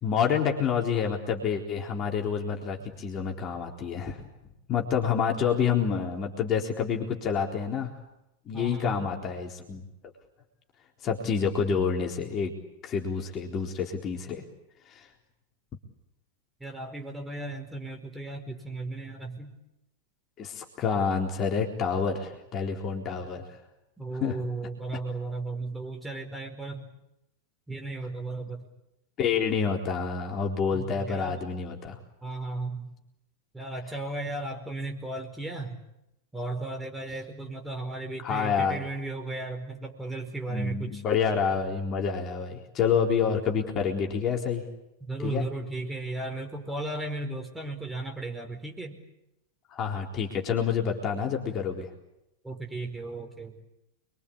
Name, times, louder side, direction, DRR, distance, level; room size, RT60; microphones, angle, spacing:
voice 1, 0.0-4.2 4.7-7.9 8.5-9.8 11.0-12.5 12.8-14.4 14.9-15.1 20.4-23.6 24.2-24.4 29.2-32.0 38.2-38.8 40.5-44.6 45.2-45.4 49.7-51.9, left 6 dB, 30° left, 1 dB, 4.0 m, -28 dB
voice 2, 8.5-9.1 16.6-19.5 24.0-26.9 27.7-28.7 30.7-31.4 32.2-32.9 33.5-35.8 36.3-41.0 45.0-49.0 52.4-53.6, right 2 dB, 5° right, 4 dB, 4.8 m, -35 dB
28.5 x 23.0 x 8.8 m, 0.88 s
figure-of-eight pair, 90°, 0 cm